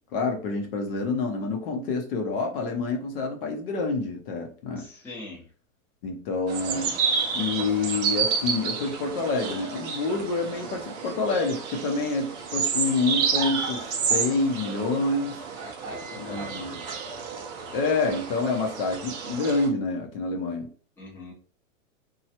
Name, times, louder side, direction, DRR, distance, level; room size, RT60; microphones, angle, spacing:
voice 1, 0.1-4.9 6.0-6.9 7.3-15.4 16.2-16.8 17.7-20.7, left 3 dB, 45° left, 3 dB, 0.7 m, -27 dB
voice 2, 4.8-5.4 8.1-8.2 15.6-16.8 21.0-21.3, left 2 dB, 5° left, -5 dB, 0.7 m, -42 dB
sound 1, 6.5-19.7, right 6 dB, 30° right, 0.5 m, -30 dB
3.1 x 2.3 x 2.8 m, 0.42 s
hypercardioid pair, 145°, 41 cm